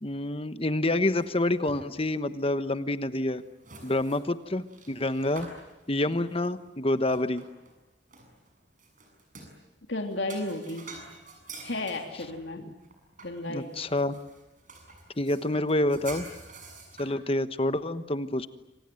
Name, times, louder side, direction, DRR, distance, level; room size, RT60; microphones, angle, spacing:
voice 1, 0.0-3.4 3.8-5.5 5.9-7.4 12.7-12.8 13.5-14.2 15.2-16.3 17.0-18.5, left 1 dB, 30° left, 12 dB, 1.1 m, -28 dB
sound 1, 0.9-2.1 2.4-2.6 3.2-7.8 8.1-9.6 10.0-17.1, right 3 dB, 40° right, 7.2 m, -48 dB
voice 2, 9.9-10.9 11.6-12.6 13.2-13.8, left 2 dB, 65° left, 3 dB, 3.2 m, -33 dB
27.5 x 26.0 x 7.8 m, 1.0 s
head